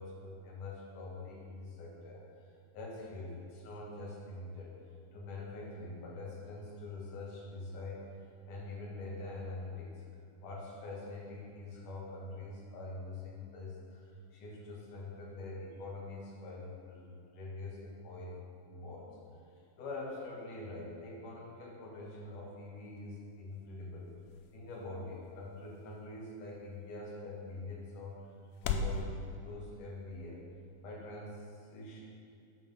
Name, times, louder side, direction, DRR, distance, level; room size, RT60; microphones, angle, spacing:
voice 1, 0.0-2.3 2.7-4.7 5.1-8.0 8.4-9.9 10.4-14.0 14.3-18.3 18.6-19.1 19.8-24.1 24.5-28.2 28.6-30.4 30.8-32.0, left 2 dB, 60° left, -3 dB, 3.1 m, -44 dB
sound 1, 22.8-29.0, left 5 dB, 80° left, 2.3 m, -43 dB
8.9 x 7.3 x 5.5 m, 2.5 s
omnidirectional pair, 4.4 m